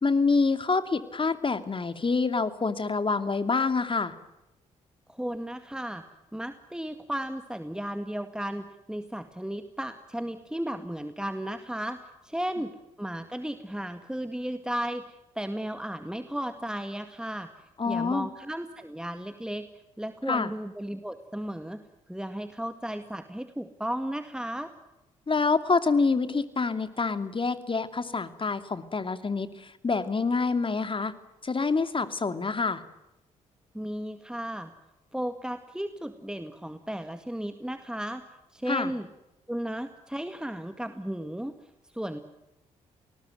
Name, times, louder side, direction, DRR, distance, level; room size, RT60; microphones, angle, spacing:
voice 1, 0.0-4.1 17.8-18.3 20.3-20.5 25.3-31.1 31.4-32.8 38.7-38.9, left 4 dB, 30° left, 10 dB, 2.7 m, -26 dB
voice 2, 5.1-6.0 6.3-12.7 13.0-17.5 17.9-19.7 20.0-21.8 22.1-24.7 33.7-34.7 35.1-38.2 38.5-39.1 39.5-41.6 41.9-42.2, right 1 dB, 5° right, 8 dB, 2.0 m, -34 dB
27.5 x 19.5 x 9.3 m, 0.96 s
hypercardioid pair, 45°, 17 cm